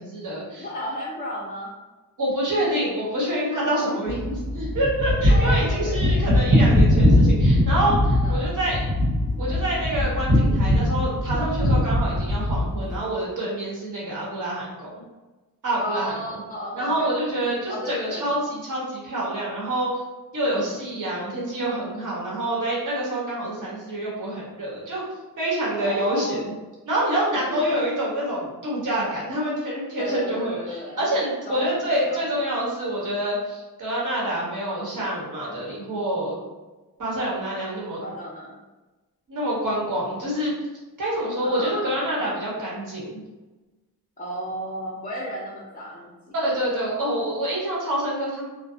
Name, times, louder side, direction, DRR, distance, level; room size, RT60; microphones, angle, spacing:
voice 1, 0.0-0.7 2.2-8.9 9.4-14.9 15.6-16.4 16.7-19.9 20.3-25.0 25.4-26.5 26.9-36.3 37.0-38.0 39.3-40.5 41.0-43.2 46.4-48.5, right 1 dB, 55° right, -5 dB, 1.1 m, -27 dB
voice 2, 0.6-1.7 3.6-4.0 5.3-6.3 8.2-8.5 12.0-12.3 15.8-18.4 20.5-20.8 25.8-26.4 27.4-27.9 30.0-31.0 31.4-32.2 35.5-35.7 38.0-38.6 41.4-42.3 44.2-46.4, left 1 dB, 25° left, -4 dB, 0.4 m, -34 dB
sound 1, 4.1-13.0, left 1 dB, 75° right, 1.4 m, -21 dB
2.6 x 2.1 x 2.6 m, 1.2 s
wide cardioid pair, 90°, 38 cm